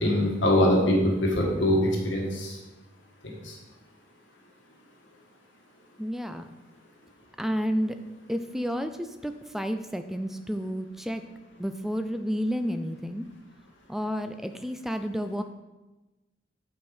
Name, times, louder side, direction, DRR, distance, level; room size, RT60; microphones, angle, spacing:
voice 1, 0.0-1.8 2.0-2.5 3.4-3.5, left 1 dB, 80° left, -1 dB, 1.6 m, -23 dB
voice 2, 6.0-6.5 7.4-8.0 8.3-11.2 11.6-13.3 13.9-15.4, equal, ahead, 8 dB, 0.3 m, -31 dB
8.2 x 4.5 x 4.9 m, 1.1 s
head